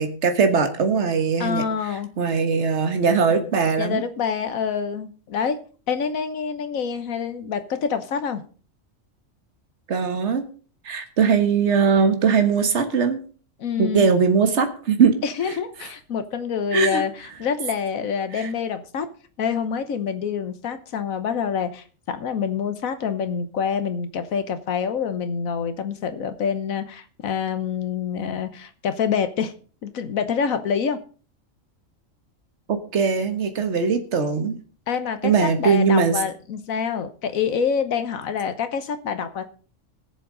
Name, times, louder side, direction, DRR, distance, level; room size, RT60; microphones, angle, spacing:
voice 1, 0.0-1.6 2.2-4.0 9.9-10.4 10.8-13.2 13.8-15.2 15.5-15.6 16.7-17.0 18.4-18.5 32.7-34.6 35.2-36.2, right 5 dB, 60° right, 7 dB, 1.6 m, -20 dB
voice 2, 1.4-2.1 3.8-5.6 5.9-8.4 13.6-14.1 15.2-19.1 19.4-29.5 29.8-31.0 34.9-39.4, left 6 dB, 90° left, 10 dB, 1.4 m, -26 dB
20.0 x 7.2 x 3.9 m, 0.40 s
omnidirectional pair, 1.4 m